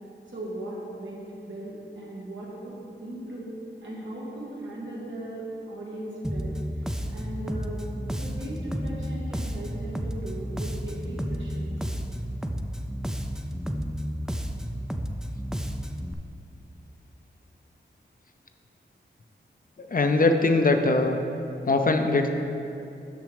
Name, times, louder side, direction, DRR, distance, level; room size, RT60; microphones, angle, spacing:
voice 1, 0.3-3.5 3.8-7.8 8.1-11.8, right 1 dB, 85° right, -5 dB, 1.8 m, -38 dB
Bass guitar, 6.2-16.1, equal, 5° right, 0.4 m, -32 dB
voice 2, 19.8-21.2 21.7-22.3, left 3 dB, 45° left, 5 dB, 0.6 m, -21 dB
6.3 x 6.0 x 5.1 m, 2.8 s
cardioid pair, 60°, 20 cm